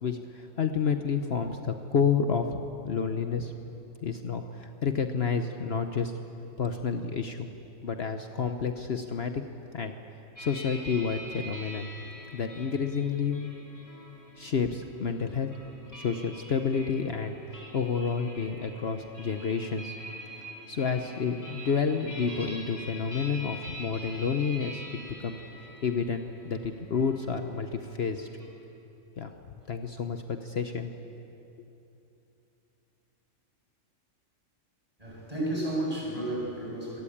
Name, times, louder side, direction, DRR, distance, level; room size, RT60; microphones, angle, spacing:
voice 1, 0.0-3.5 4.0-6.1 6.6-7.5 7.8-9.4 9.7-9.9 10.4-11.9 12.3-13.5 14.4-15.5 15.9-19.9 20.7-25.4 25.8-28.3 29.2-29.3 29.7-30.9, left 6 dB, 55° left, 6 dB, 1.1 m, -30 dB
sound 1, 10.4-28.6, equal, 15° left, 4.2 m, -45 dB
voice 2, 35.0-37.0, right 1 dB, 30° right, -3 dB, 6.9 m, -32 dB
25.0 x 18.5 x 8.7 m, 2.9 s
omnidirectional pair, 1.3 m